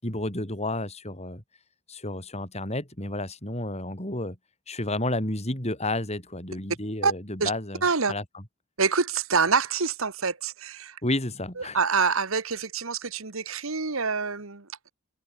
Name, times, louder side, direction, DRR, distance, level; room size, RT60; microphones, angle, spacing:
voice 1, 0.0-1.4 1.9-4.4 4.7-8.4 11.0-11.8, left 1 dB, 30° left, 6.2 m, -31 dB
voice 2, 7.8-8.1 8.8-11.0 11.7-14.9, right 5 dB, 70° right, 1.6 m, -26 dB
head